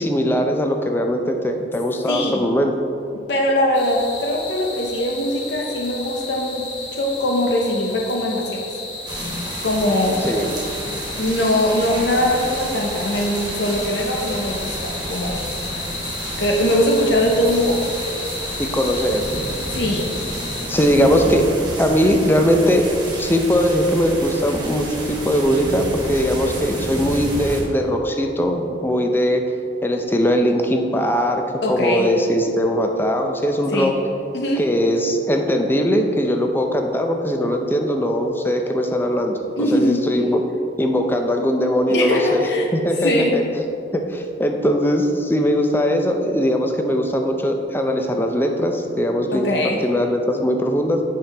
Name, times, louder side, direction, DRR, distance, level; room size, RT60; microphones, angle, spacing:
voice 1, 0.0-2.7 10.2-10.5 18.6-19.3 20.7-22.9 23.2-29.4 29.8-33.9 34.6-40.4 40.8-43.4 43.9-49.5 49.8-51.0, equal, 10° left, 4 dB, 0.5 m, -20 dB
voice 2, 2.1-2.5 3.1-6.7 6.9-8.6 9.6-10.3 11.2-15.4 16.4-17.9 19.7-20.1 31.6-32.1 33.7-34.0 34.3-34.7 39.6-40.0 41.9-42.7 43.0-43.4 49.3-49.8, left 1 dB, 65° left, 0 dB, 0.7 m, -21 dB
sound 1, 3.7-20.6, left 3 dB, 85° left, 1.2 m, -33 dB
sound 2, 9.1-27.6, right 1 dB, 25° right, 1.5 m, -30 dB
8.5 x 5.7 x 3.4 m, 2.8 s
head